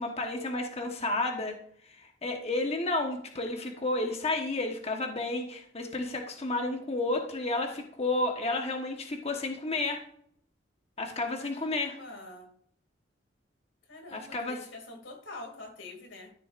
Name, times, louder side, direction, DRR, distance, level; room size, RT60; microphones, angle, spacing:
voice 1, 0.0-1.6 1.8-10.0 11.0-12.0 14.1-14.6, left 2 dB, 35° left, 2 dB, 1.1 m, -31 dB
voice 2, 11.4-12.5 13.9-16.3, left 2 dB, 90° left, 4 dB, 2.4 m, -46 dB
13.0 x 7.5 x 2.5 m, 0.63 s
head